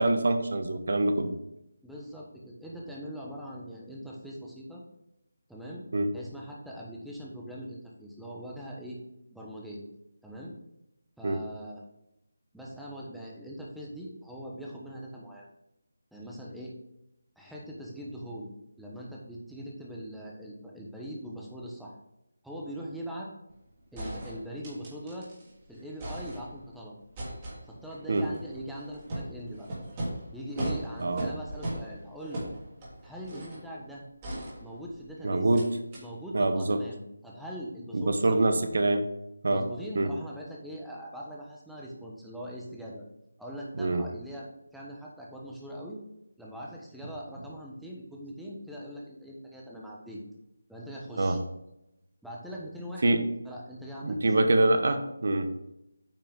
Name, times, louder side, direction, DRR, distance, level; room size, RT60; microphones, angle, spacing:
voice 1, 0.0-1.3 5.9-6.1 11.2-11.4 28.1-28.3 31.0-31.3 35.2-35.7 36.3-36.8 37.9-39.1 39.4-39.7 39.9-40.1 43.8-44.0 51.2-51.4 53.0-53.3 54.0-55.7, right 2 dB, 60° right, 8 dB, 1.0 m, -25 dB
voice 2, 1.8-4.8 5.5-5.8 6.1-9.0 9.3-9.9 10.2-10.5 11.2-11.8 12.5-15.5 16.1-16.7 17.4-22.0 22.4-23.3 23.9-25.3 25.7-27.0 27.7-29.7 30.3-32.5 33.0-34.0 34.6-35.5 36.0-38.4 39.5-43.0 43.4-44.5 44.7-46.0 46.4-50.2 50.7-51.4 52.2-54.5, equal, ahead, -4 dB, 1.1 m, -41 dB
sound 1, 23.5-23.6 24.0-25.5 25.8-26.7 27.2-33.7 34.2-35.1 35.5-35.7 35.9-36.0, right 1 dB, 25° right, 2.9 m, -38 dB
8.9 x 5.6 x 3.7 m, 0.86 s
figure-of-eight pair, 165°, 0 cm